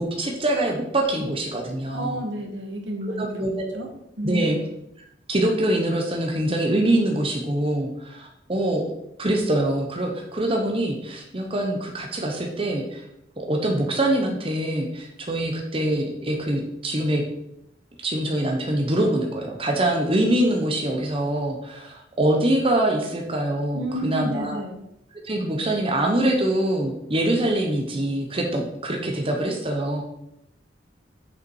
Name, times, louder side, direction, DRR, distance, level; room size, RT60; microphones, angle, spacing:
voice 1, 0.0-2.2 3.1-3.8 4.2-4.6 5.3-8.8 9.2-13.0 13.4-17.2 18.0-24.6 25.1-30.0, right 1 dB, 30° right, 1 dB, 1.0 m, -24 dB
voice 2, 1.9-3.9 4.2-4.6 23.7-24.8, right 1 dB, 75° right, 3 dB, 1.6 m, -31 dB
6.8 x 5.8 x 4.7 m, 0.82 s
head